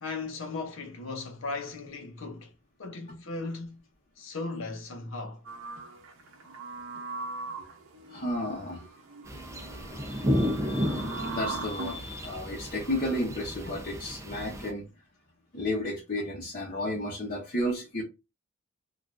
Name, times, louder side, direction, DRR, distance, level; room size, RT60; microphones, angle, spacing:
voice 1, 0.0-2.5 2.8-3.8 4.2-5.4, left 3 dB, 75° left, 0.7 m, -37 dB
sound 1, 5.4-12.1 12.7-13.2, right 3 dB, 75° right, 0.7 m, -40 dB
voice 2, 8.1-8.9 10.0-14.8 15.5-18.0, left 1 dB, 45° left, 0.8 m, -33 dB
sound 2, 9.3-14.7, equal, 15° right, 0.5 m, -33 dB
3.3 x 2.5 x 2.5 m
head